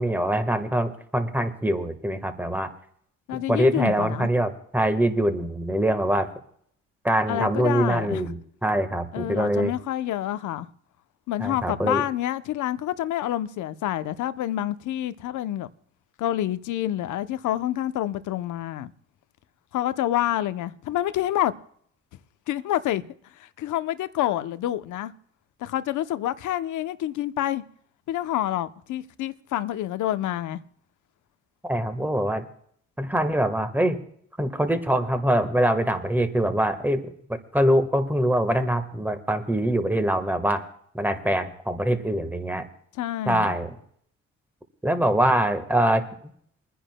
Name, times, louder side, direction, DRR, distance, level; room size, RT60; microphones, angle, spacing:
voice 1, 0.0-2.7 3.3-6.3 7.0-9.7 11.4-12.0 31.6-32.4 33.0-34.0 34.4-40.6 40.9-42.7 43.3-43.7 44.8-46.0, right 1 dB, 5° right, 1.4 m, -24 dB
voice 2, 3.3-4.3 7.3-8.2 9.1-10.7 11.3-15.7 16.2-18.9 19.7-21.5 22.5-23.0 23.4-25.1 25.6-27.6 28.1-30.6 43.0-43.5, left 12 dB, 80° left, 0.8 m, -27 dB
30.0 x 10.0 x 2.2 m
cardioid pair, 90°, 30 cm